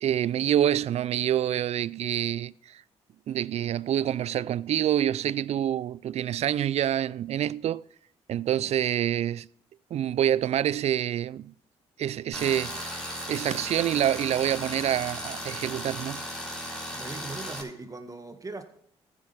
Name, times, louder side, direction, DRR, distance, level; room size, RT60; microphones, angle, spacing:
voice 1, 0.0-2.8 3.3-7.8 8.3-9.5 9.9-11.5 12.0-16.2, right 10 dB, 60° right, 0.4 m, -27 dB
Tools, 12.3-17.6, equal, 5° left, 4.2 m, -36 dB
voice 2, 16.9-18.6, right 3 dB, 30° right, 1.8 m, -40 dB
14.5 x 9.7 x 3.4 m
supercardioid pair, 60°, 13 cm